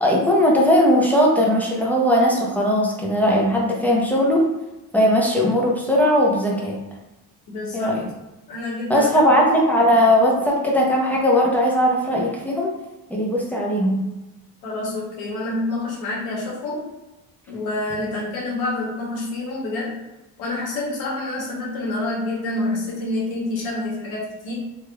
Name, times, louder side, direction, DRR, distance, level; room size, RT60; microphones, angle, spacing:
voice 1, 0.0-4.4 4.9-6.8 7.7-8.0 8.9-12.7 13.1-14.0, equal, 5° left, -3 dB, 0.7 m, -18 dB
voice 2, 7.5-8.0 8.5-9.1 14.6-16.8 17.5-20.0 20.4-24.5, left 2 dB, 85° left, -3 dB, 1.1 m, -27 dB
3.2 x 3.0 x 2.3 m, 1.0 s
cardioid pair, 110°, 37 cm